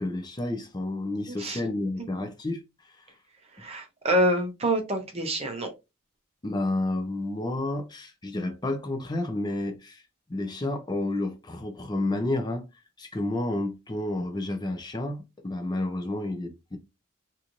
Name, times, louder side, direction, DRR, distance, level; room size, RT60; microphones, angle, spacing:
voice 1, 0.0-2.6 6.4-10.0 10.3-12.7 13.0-16.8, left 2 dB, 20° left, 0.5 m, -30 dB
voice 2, 1.3-1.6 3.4-5.7, right 1 dB, 30° right, 0.6 m, -27 dB
3.0 x 2.6 x 2.5 m
head